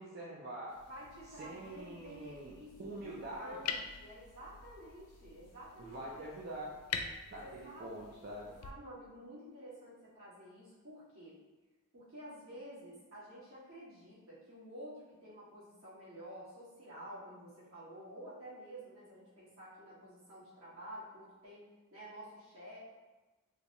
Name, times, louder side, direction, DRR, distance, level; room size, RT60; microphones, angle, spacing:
voice 1, 0.0-0.8 1.4-3.7 5.8-6.7 7.3-8.6, right 1 dB, 45° right, -5 dB, 0.4 m, -45 dB
sound 1, 0.7-8.7, left 6 dB, 90° left, 0.3 m, -46 dB
voice 2, 0.9-6.7 7.4-8.1 8.5-11.4 11.9-22.8, equal, 70° right, -9 dB, 1.5 m, -51 dB
3.8 x 2.1 x 2.8 m, 1.2 s
head